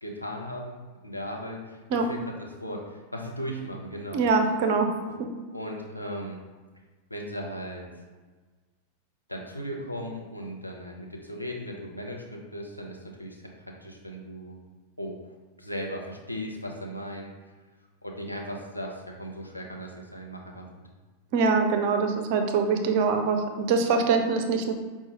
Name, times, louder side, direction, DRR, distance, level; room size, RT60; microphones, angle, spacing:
voice 1, 0.0-4.2 5.5-6.4 7.1-7.9 9.3-14.6 15.0-15.2 15.6-17.3 18.0-20.8, equal, 85° left, 0 dB, 0.6 m, -37 dB
voice 2, 4.1-4.9 5.2-5.3 21.3-24.7, right 4 dB, 45° right, 5 dB, 0.5 m, -24 dB
5.3 x 2.3 x 2.9 m, 1.3 s
figure-of-eight pair, 90°, 0 cm